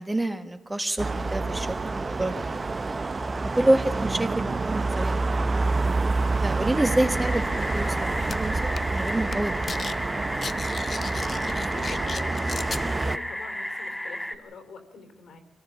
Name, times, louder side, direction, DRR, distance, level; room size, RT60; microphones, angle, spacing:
voice 1, 0.0-2.6 3.5-5.5 6.4-8.6 8.9-9.7, right 1 dB, 15° right, 7 dB, 1.3 m, -27 dB
sound 1, 1.0-13.2, right 3 dB, 30° right, 0.7 m, -28 dB
sound 2, 6.8-14.4, left 1 dB, 5° left, 1.7 m, -33 dB
sound 3, 8.3-8.4 8.8-9.0 9.3-10.0 10.2-12.8, left 4 dB, 35° left, 0.6 m, -35 dB
voice 2, 11.3-15.4, left 4 dB, 75° left, 6 dB, 3.9 m, -44 dB
25.0 x 17.0 x 7.2 m, 1.1 s
cardioid pair, 110°, 0 cm